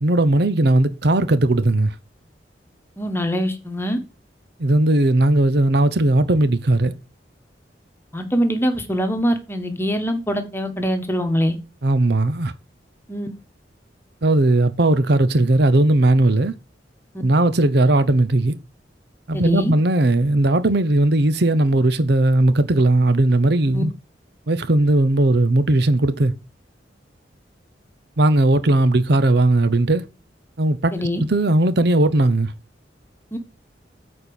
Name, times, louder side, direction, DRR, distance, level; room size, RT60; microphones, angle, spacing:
voice 1, 0.0-1.9 4.6-6.9 11.8-12.5 14.2-16.5 17.2-18.6 19.3-23.9 24.5-26.3 28.2-30.0 30.6-32.5, right 2 dB, 65° right, 0.8 m, -17 dB
voice 2, 3.0-4.0 8.1-11.6 13.1-13.3 19.3-19.7 23.7-23.8 30.9-31.2 33.3-33.4, equal, 15° left, 1.3 m, -23 dB
8.6 x 4.4 x 7.0 m
head